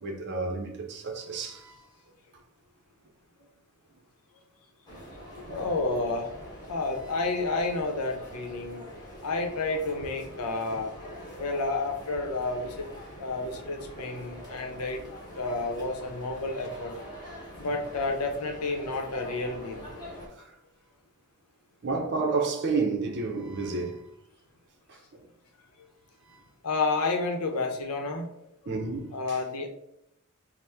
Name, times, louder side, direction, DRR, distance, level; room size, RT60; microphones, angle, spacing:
voice 1, 0.0-1.9 5.5-5.6 10.7-10.8 13.5-13.6 17.6-17.7 20.4-20.5 21.8-24.1 24.9-25.2 26.3-26.4 28.7-29.1, right 4 dB, 50° right, 0.6 m, -31 dB
sound 1, 4.9-20.3, equal, 20° left, 1.1 m, -44 dB
voice 2, 5.5-6.4 6.6-8.8 9.2-10.9 11.4-12.9 13.2-15.0 15.3-16.9 17.6-19.8 26.6-28.3 29.1-29.7, left 3 dB, 80° left, 0.7 m, -30 dB
4.2 x 2.1 x 3.4 m
head